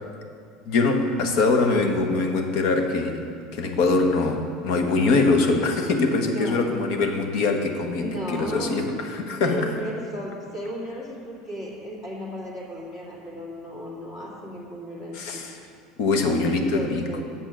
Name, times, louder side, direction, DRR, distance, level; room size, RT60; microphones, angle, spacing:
voice 1, 0.7-9.7 15.1-15.6 16.0-17.2, left 3 dB, 60° left, 5 dB, 1.0 m, -23 dB
voice 2, 6.3-6.7 8.0-8.9 9.3-15.2 16.2-16.4 16.7-17.2, equal, 25° left, -5 dB, 2.1 m, -35 dB
8.8 x 7.3 x 6.1 m, 2.3 s
cardioid pair, 160°, 0 cm